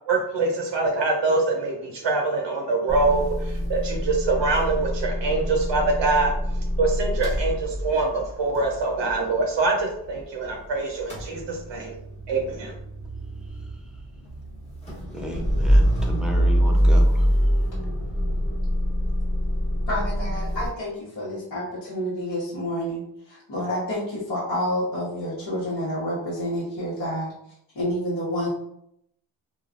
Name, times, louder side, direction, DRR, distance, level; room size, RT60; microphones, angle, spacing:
voice 1, 0.1-6.3 6.8-12.0 12.3-12.7, right 3 dB, 70° right, 1 dB, 0.6 m, -24 dB
Motor vehicle (road) / Engine starting / Idling, 2.9-10.6 10.9-20.7, equal, 15° left, 1.1 m, -25 dB
voice 2, 15.1-17.3, equal, ahead, 0 dB, 0.4 m, -34 dB
voice 3, 19.9-27.3 27.7-28.5, equal, 65° left, -8 dB, 1.1 m, -29 dB
3.0 x 2.3 x 2.4 m, 0.74 s
wide cardioid pair, 85°, 45 cm